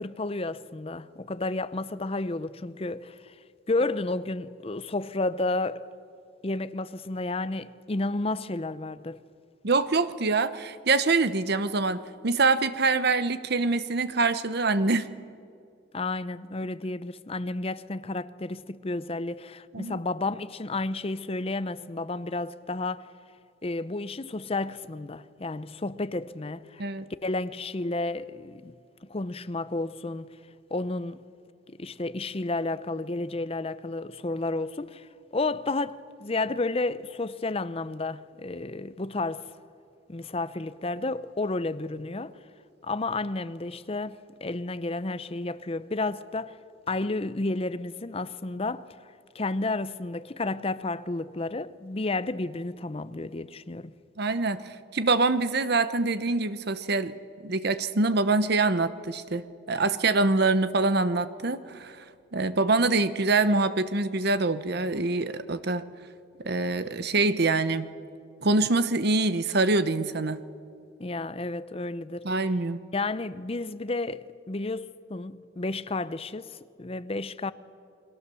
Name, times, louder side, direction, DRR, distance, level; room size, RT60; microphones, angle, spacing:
voice 1, 0.0-3.3 3.7-5.9 6.4-9.2 15.9-23.1 23.6-26.9 27.2-28.7 29.0-30.4 30.7-31.2 31.7-39.5 40.1-42.3 42.8-46.5 46.9-48.9 49.3-53.9 71.0-72.4 72.9-77.5, left 2 dB, 30° left, 0.6 m, -31 dB
voice 2, 9.6-15.1 19.7-20.0 26.8-27.0 54.2-57.2 57.4-59.4 59.7-62.0 62.3-65.8 66.4-67.9 68.4-70.4 72.2-72.8, right 3 dB, 55° right, 0.9 m, -25 dB
29.5 x 22.0 x 7.0 m
head